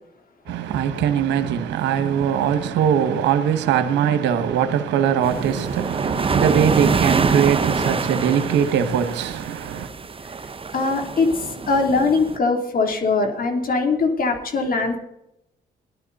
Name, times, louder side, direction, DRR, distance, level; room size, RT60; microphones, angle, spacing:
voice 1, 0.5-9.9, right 8 dB, 85° right, 1.2 m, -21 dB
sound 1, 5.2-12.4, right 4 dB, 30° right, 1.0 m, -25 dB
voice 2, 10.7-15.0, left 3 dB, 55° left, 3.3 m, -21 dB
19.0 x 11.5 x 4.2 m
supercardioid pair, 70°, 18 cm